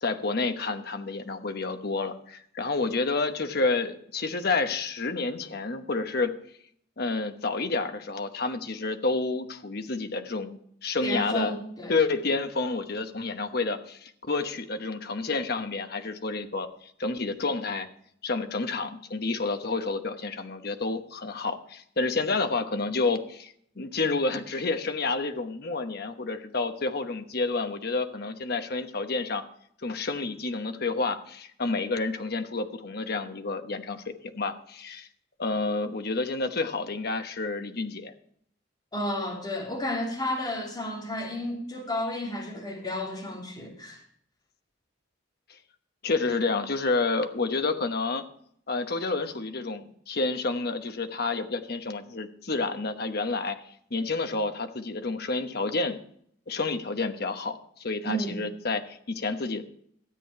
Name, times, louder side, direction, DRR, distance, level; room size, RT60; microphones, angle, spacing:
voice 1, 0.0-6.3 7.0-11.6 11.9-17.9 18.2-29.4 29.8-35.1 35.4-38.1 46.0-48.2 48.7-56.0 56.5-59.6, left 3 dB, 55° left, 1.1 m, -29 dB
voice 2, 11.0-11.9 38.9-44.0 58.0-58.4, left 1 dB, 20° left, 3.0 m, -32 dB
13.0 x 8.6 x 4.8 m
head